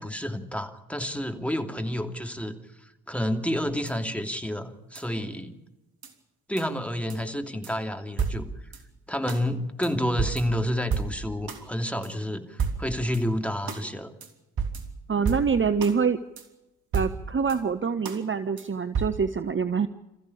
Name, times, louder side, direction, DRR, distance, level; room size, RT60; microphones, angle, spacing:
voice 1, 0.0-2.5 3.1-5.6 6.5-8.4 9.1-14.1, equal, 5° left, 5 dB, 2.9 m, -29 dB
sound 1, 3.9-4.0 5.0-5.1 6.0-6.1 6.6-6.7 7.1-7.2 7.6-7.7 8.2-8.8 9.3-9.4 9.8-9.9 10.2-11.6 12.0-12.1 12.6-13.2 13.7-13.9 14.2-14.3 14.6-16.0 16.4-16.5 16.9-17.6 18.1-18.2 18.6-18.7 18.9-19.1, right 5 dB, 55° right, 3.4 m, -31 dB
voice 2, 15.1-16.2 16.9-19.9, right 6 dB, 30° right, 11 dB, 1.1 m, -25 dB
27.0 x 15.0 x 8.6 m, 0.99 s
hypercardioid pair, 50°, 43 cm